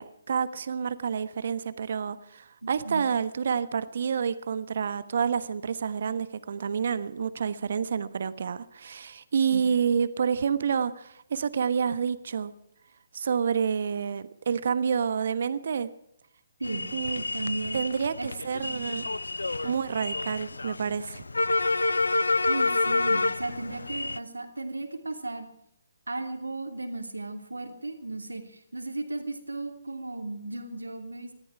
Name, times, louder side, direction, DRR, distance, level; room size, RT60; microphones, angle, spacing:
voice 1, 0.0-12.5 13.1-15.9 16.9-17.2 17.7-19.0 19.6-21.2, right 6 dB, 55° right, 14 dB, 1.2 m, -28 dB
voice 2, 2.6-3.0 9.5-9.6 16.6-16.9 17.2-17.9 18.2-18.3 18.6-18.8 22.5-25.5 26.1-31.3, right 2 dB, 80° right, 6 dB, 2.9 m, -35 dB
sound 1, 16.6-24.2, left 3 dB, 80° left, 0.5 m, -28 dB
20.0 x 14.0 x 4.8 m, 0.76 s
figure-of-eight pair, 140°, 0 cm